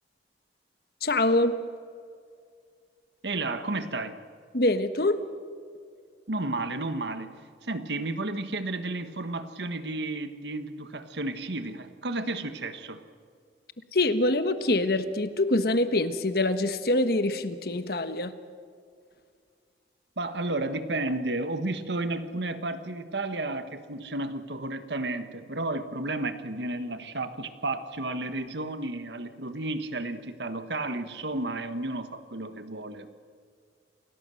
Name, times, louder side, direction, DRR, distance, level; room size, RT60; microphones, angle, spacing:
voice 1, 1.0-1.6 4.5-5.3 13.9-18.4, left 2 dB, 60° left, 10 dB, 1.3 m, -25 dB
voice 2, 3.2-4.2 6.3-7.3 7.6-13.0 20.2-33.1, right 2 dB, 80° right, 10 dB, 1.5 m, -32 dB
28.0 x 18.0 x 7.8 m, 2.2 s
head